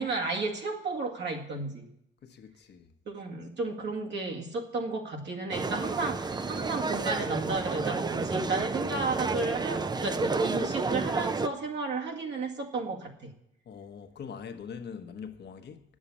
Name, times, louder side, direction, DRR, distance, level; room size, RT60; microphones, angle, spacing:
voice 1, 0.0-1.9 3.1-13.3, right 3 dB, 60° right, 2.1 m, -33 dB
voice 2, 2.2-2.9 13.6-16.0, left 6 dB, 55° left, 1.2 m, -43 dB
sound 1, 5.5-11.5, right 3 dB, 20° right, 0.6 m, -30 dB
9.5 x 7.5 x 8.5 m
cardioid pair, 90°, 20 cm